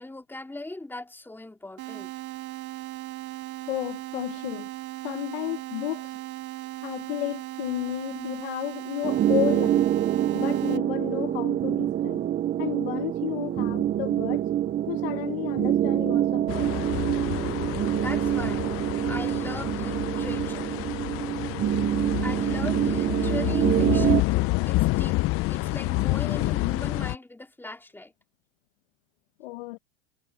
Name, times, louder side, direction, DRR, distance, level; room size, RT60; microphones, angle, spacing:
voice 1, 0.0-2.1 8.1-8.5 17.9-18.7 19.1-20.8 22.2-25.2 25.5-28.1, left 2 dB, 5° left, 3.8 m, -39 dB
sound 1, 1.8-10.8, right 17 dB, 55° right, 3.1 m, -37 dB
voice 2, 3.7-4.7 5.0-6.1 6.8-9.9 10.3-12.2 12.6-14.5 14.9-16.8 29.4-29.8, left 17 dB, 80° left, 1.2 m, -32 dB
sound 2, 9.0-24.2, right 11 dB, 30° right, 0.7 m, -26 dB
sound 3, 16.5-27.2, left 21 dB, 45° left, 0.6 m, -28 dB
supercardioid pair, 110°, 30 cm